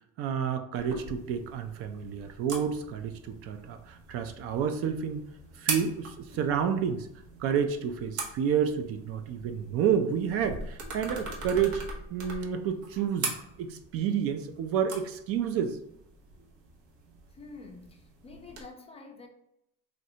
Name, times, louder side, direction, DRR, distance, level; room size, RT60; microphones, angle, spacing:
voice 1, 0.2-5.2 5.5-7.1 7.4-13.3 13.6-15.8, right 7 dB, 50° right, 8 dB, 0.4 m, -30 dB
sound 1, 0.7-18.6, right 4 dB, 65° right, 0.9 m, -41 dB
voice 2, 17.3-19.3, left 3 dB, 20° left, 3 dB, 0.4 m, -48 dB
3.2 x 2.5 x 2.7 m, 0.78 s
supercardioid pair, 115°, 31 cm